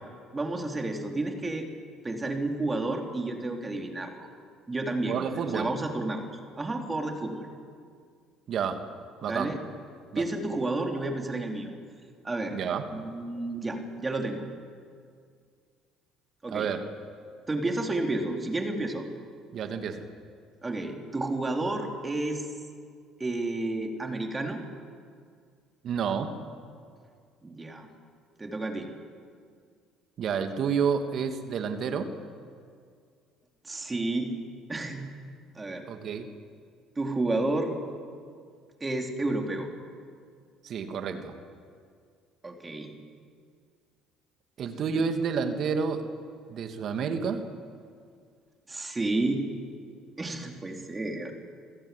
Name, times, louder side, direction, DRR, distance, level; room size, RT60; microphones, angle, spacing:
voice 1, 0.3-1.7 2.0-4.3 4.7-6.3 6.6-7.5 9.2-9.6 10.1-11.7 12.2-12.6 12.9-14.4 16.4-16.7 17.5-19.0 20.6-22.4 23.2-24.6 27.4-27.9 28.4-28.9 33.6-34.3 34.7-35.1 35.6-35.8 37.0-37.8 38.8-39.7 42.4-42.9 44.9-45.0 48.7-49.5 50.2-51.3, right 2 dB, 20° right, 2 dB, 4.1 m, -31 dB
voice 2, 5.1-5.7 8.5-8.8 9.2-9.5 10.1-10.3 12.5-12.9 16.5-16.8 19.5-20.1 25.8-26.3 30.2-32.1 35.9-36.3 40.6-41.3 44.6-46.0 46.5-47.4, right 6 dB, 55° right, 6 dB, 2.5 m, -29 dB
28.5 x 16.5 x 8.0 m, 2.2 s
hypercardioid pair, 60°, 0 cm